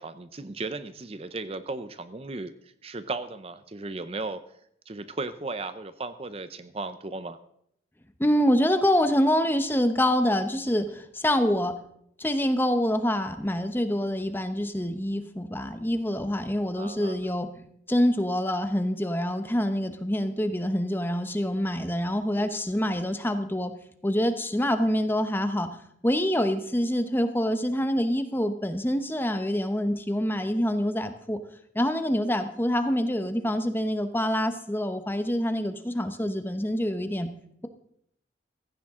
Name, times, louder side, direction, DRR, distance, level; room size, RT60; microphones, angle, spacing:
voice 1, 0.0-2.5 2.8-4.4 4.9-7.4 16.7-17.2, right 3 dB, 35° right, 12 dB, 0.6 m, -35 dB
voice 2, 8.2-11.7 12.2-23.7 24.0-25.7 26.0-31.4 31.7-37.3, equal, 10° left, 9 dB, 0.9 m, -26 dB
16.0 x 15.0 x 3.7 m, 0.71 s
head